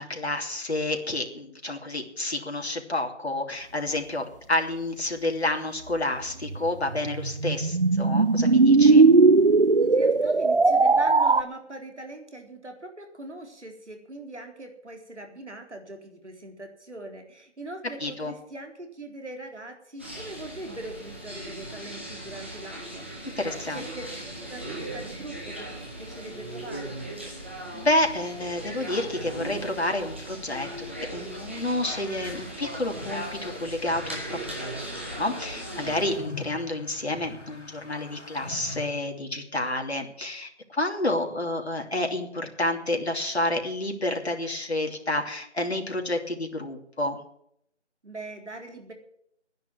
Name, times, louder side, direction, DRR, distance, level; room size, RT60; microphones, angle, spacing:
voice 1, 0.0-9.0 18.0-18.3 23.4-23.8 27.3-27.4 27.7-47.2, left 1 dB, 65° left, 3 dB, 3.1 m, -29 dB
sound 1, 6.5-11.4, right 3 dB, 50° right, 0.6 m, -18 dB
voice 2, 9.8-27.0 48.0-48.9, right 2 dB, 75° right, 4 dB, 4.1 m, -42 dB
sound 2, 20.0-36.2, right 1 dB, 10° right, 1.2 m, -38 dB
sound 3, 32.0-38.9, left 2 dB, 85° left, 2.7 m, -44 dB
11.0 x 10.5 x 9.6 m, 0.72 s
figure-of-eight pair, 170°, 35 cm